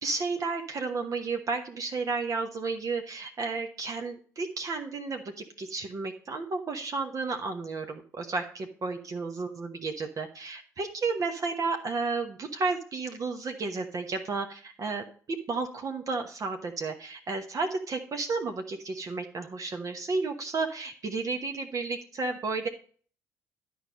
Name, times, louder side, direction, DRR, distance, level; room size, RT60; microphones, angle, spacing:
voice 1, 0.0-22.7, right 4 dB, 40° right, 4 dB, 1.1 m, -32 dB
11.0 x 4.7 x 5.1 m, 0.44 s
figure-of-eight pair, 50°, 9 cm